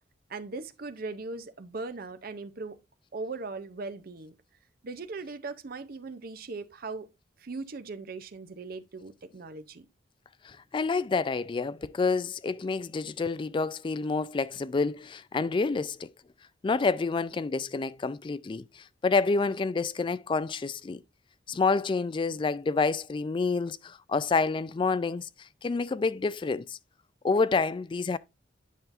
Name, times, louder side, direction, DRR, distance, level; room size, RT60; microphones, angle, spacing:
voice 1, 0.3-2.8 3.1-4.3 4.8-7.1 7.4-9.9, right 3 dB, 55° right, 0.6 m, -39 dB
voice 2, 10.4-16.1 16.6-21.0 21.5-26.8 27.2-28.2, left 4 dB, 25° left, 0.3 m, -28 dB
9.2 x 5.5 x 2.5 m
head